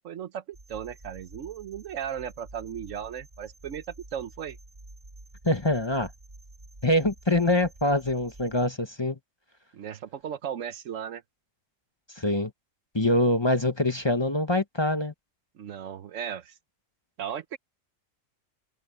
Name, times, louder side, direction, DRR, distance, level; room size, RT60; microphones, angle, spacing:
voice 1, 0.0-3.9 4.1-4.6 9.7-11.2 15.5-16.5 17.2-17.6, right 9 dB, 75° right, 1.2 m, -36 dB
sound 1, 0.5-8.7, right 2 dB, 35° right, 4.1 m, -50 dB
voice 2, 5.4-6.1 6.8-9.2 12.2-12.5 12.9-15.1, left 1 dB, 20° left, 1.2 m, -24 dB
omnidirectional pair, 1.4 m